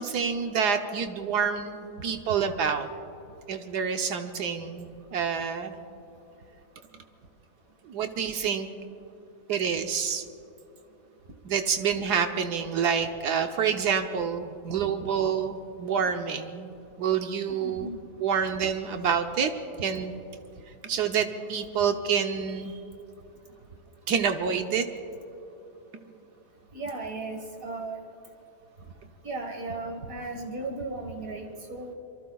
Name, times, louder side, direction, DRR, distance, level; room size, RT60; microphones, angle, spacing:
voice 1, 0.0-2.9 3.5-5.8 7.9-8.7 9.5-10.2 11.4-17.9 18.2-19.5 19.8-20.1 20.8-22.7 24.1-24.9, right 7 dB, 75° right, 5 dB, 1.3 m, -27 dB
voice 2, 17.5-18.0 22.6-22.8 26.7-28.0 29.2-31.9, right 2 dB, 55° right, 2 dB, 1.9 m, -36 dB
27.0 x 23.5 x 2.3 m, 2.9 s
omnidirectional pair, 1.8 m